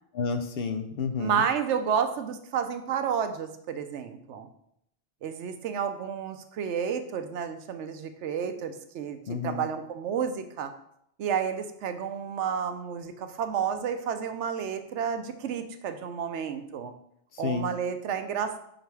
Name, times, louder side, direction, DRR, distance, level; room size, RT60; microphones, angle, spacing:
voice 1, 0.1-1.4 9.3-9.6 17.3-17.7, left 5 dB, 65° left, 7 dB, 0.7 m, -30 dB
voice 2, 1.2-4.5 5.2-9.2 9.4-10.7 11.2-16.9 17.4-18.6, right 7 dB, 85° right, 8 dB, 0.9 m, -31 dB
5.6 x 3.8 x 4.6 m, 0.73 s
omnidirectional pair, 1.2 m